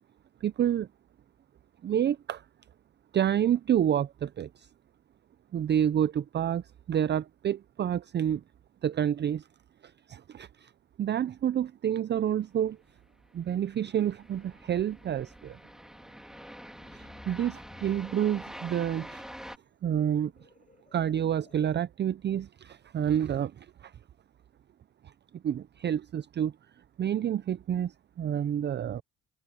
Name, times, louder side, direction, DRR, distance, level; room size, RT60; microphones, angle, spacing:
voice 1, 0.4-0.9 1.8-2.4 3.1-4.7 5.5-8.4 8.8-9.4 9.8-10.7 11.0-12.8 13.3-15.6 16.9-19.2 19.8-20.3 20.9-23.9 25.4-26.5 27.0-29.0, right 10 dB, 35° right, 0.4 m, -29 dB
sound 1, 12.9-19.6, equal, ahead, 2.6 m, -46 dB
sound 2, 16.7-21.8, left 4 dB, 25° left, 4.0 m, -57 dB
cardioid pair, 90°, 30 cm